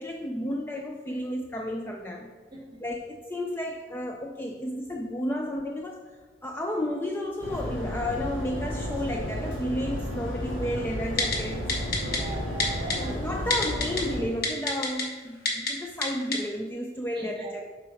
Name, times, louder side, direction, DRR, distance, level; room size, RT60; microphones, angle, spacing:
voice 1, 0.0-2.3 2.8-6.1 6.4-11.7 13.0-17.7, left 1 dB, 10° left, 2 dB, 0.3 m, -32 dB
voice 2, 2.5-2.8 11.9-13.2 17.1-17.5, right 3 dB, 25° right, -1 dB, 1.5 m, -40 dB
sound 1, 7.4-14.2, equal, 75° left, 2.0 m, -33 dB
Typing, 11.2-11.4 11.7-12.2 12.6-13.0 13.5-14.0 14.4-15.0 15.5-15.7 16.0-16.1 16.3-16.4, left 3 dB, 55° left, 1.1 m, -25 dB
7.7 x 4.7 x 4.4 m, 1.4 s
head